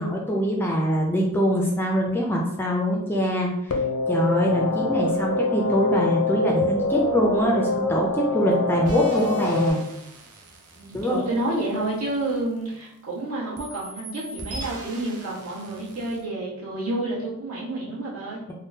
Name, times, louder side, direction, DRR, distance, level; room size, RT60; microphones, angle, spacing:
voice 1, 0.0-3.8 4.1-9.8 10.9-11.4, equal, 10° left, -1 dB, 0.3 m, -23 dB
sound 1, 3.7-9.7, left 2 dB, 75° left, 0.5 m, -25 dB
sound 2, 8.8-13.1 13.5-16.2, right 1 dB, 90° right, 0.6 m, -42 dB
voice 2, 10.8-18.4, right 2 dB, 65° right, -7 dB, 1.4 m, -29 dB
3.5 x 2.2 x 2.6 m, 0.83 s
head